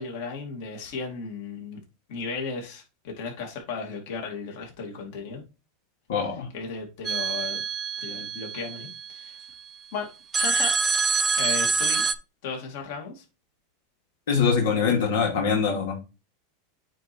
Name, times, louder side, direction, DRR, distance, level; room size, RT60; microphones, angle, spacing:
voice 1, 0.0-1.8 2.1-5.4 6.5-7.6 8.0-9.4 9.9-10.1 10.3-10.7 11.4-12.0 12.4-13.2 14.9-15.0, left 4 dB, 60° left, 0 dB, 2.6 m, -35 dB
voice 2, 6.1-6.5 14.3-16.0, left 6 dB, 85° left, -1 dB, 2.3 m, -23 dB
sound 1, 7.0-9.3 10.3-12.1, right 5 dB, 15° right, 0.6 m, -26 dB
9.0 x 3.1 x 4.4 m, 0.29 s
supercardioid pair, 135°, 0 cm